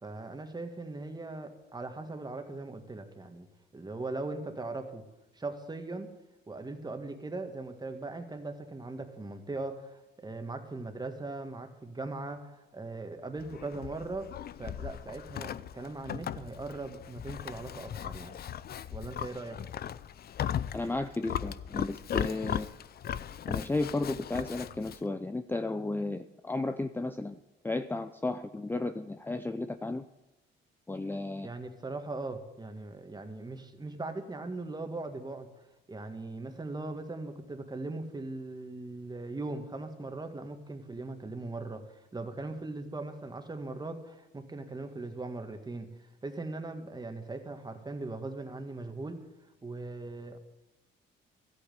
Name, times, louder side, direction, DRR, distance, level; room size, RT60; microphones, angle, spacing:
voice 1, 0.0-3.5 3.7-5.0 5.3-6.1 6.5-18.4 18.9-19.6 31.4-49.2 49.6-50.4, right 2 dB, 20° right, 6 dB, 1.8 m, -39 dB
Livestock farm animals working animals, 13.4-25.0, left 10 dB, 50° left, 0.5 m, -38 dB
voice 2, 20.7-22.7 23.5-27.4 27.6-30.0 30.9-31.5, left 2 dB, 10° left, 10 dB, 0.6 m, -33 dB
13.0 x 8.5 x 9.2 m, 1.0 s
cardioid pair, 90°, 20 cm